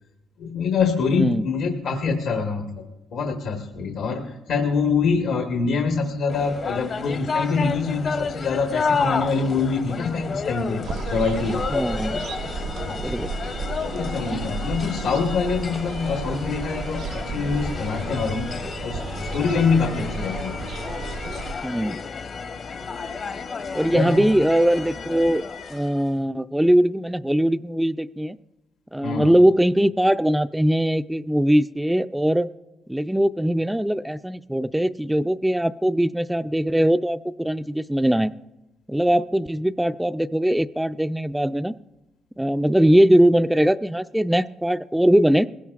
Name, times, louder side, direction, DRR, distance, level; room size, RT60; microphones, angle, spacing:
voice 1, 0.4-2.8 3.1-11.6 12.8-13.0 13.8-20.6 23.9-24.2 29.0-29.3, left 5 dB, 75° left, 3 dB, 1.2 m, -25 dB
voice 2, 1.1-1.4 11.7-12.3 13.0-13.3 21.6-22.0 23.7-25.4 25.7-28.4 28.9-32.5 32.9-38.3 38.9-41.8 42.4-45.5, equal, 5° right, 12 dB, 0.3 m, -21 dB
sound 1, 6.3-26.1, left 5 dB, 50° left, 0.8 m, -31 dB
sound 2, 10.8-21.5, right 4 dB, 80° right, 0.7 m, -33 dB
20.5 x 16.5 x 2.4 m, 1.0 s
cardioid pair, 90°, 0 cm